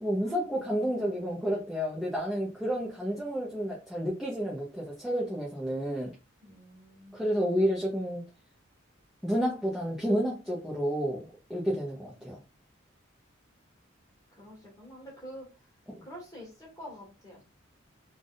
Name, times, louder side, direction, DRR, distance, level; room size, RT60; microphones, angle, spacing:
voice 1, 0.0-6.1 7.1-8.3 9.2-12.4, equal, ahead, 0.8 m, -30 dB
voice 2, 6.4-7.3 14.3-15.5 16.0-17.4, equal, 15° left, 1.7 m, -47 dB
3.5 x 2.4 x 3.9 m
head